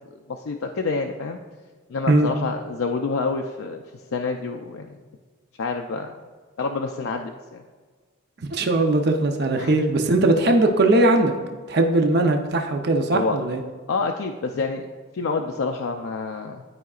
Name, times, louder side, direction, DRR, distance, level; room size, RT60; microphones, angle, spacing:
voice 1, 0.3-1.4 1.9-5.0 5.6-6.1 6.6-7.6 9.6-9.8 13.1-13.4 13.9-14.9 15.1-16.6, left 4 dB, 85° left, 3 dB, 0.4 m, -28 dB
voice 2, 8.5-11.3 11.7-13.6, right 2 dB, 55° right, 4 dB, 0.6 m, -19 dB
12.0 x 4.9 x 2.4 m, 1.5 s
head